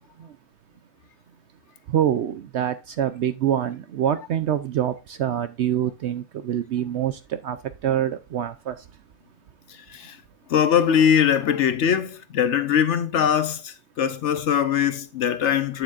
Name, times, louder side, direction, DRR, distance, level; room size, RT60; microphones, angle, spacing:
voice 1, 1.9-7.6 7.8-8.8, right 10 dB, 65° right, 0.7 m, -25 dB
voice 2, 10.5-15.8, left 8 dB, 60° left, 0.9 m, -21 dB
8.8 x 7.6 x 2.5 m
omnidirectional pair, 1.5 m